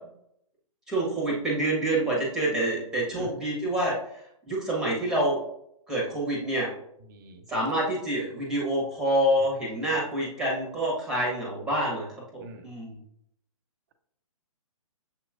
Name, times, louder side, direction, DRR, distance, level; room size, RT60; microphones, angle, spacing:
voice 1, 0.9-3.9 4.5-5.4 5.9-6.7 7.5-12.1 12.3-13.0, right 1 dB, 5° right, -4 dB, 1.3 m, -27 dB
voice 2, 7.1-7.6 9.4-9.5 9.9-10.0 12.4-12.7, right 2 dB, 35° right, 7 dB, 0.6 m, -44 dB
7.0 x 3.0 x 2.4 m, 0.73 s
figure-of-eight pair, 130°, 19 cm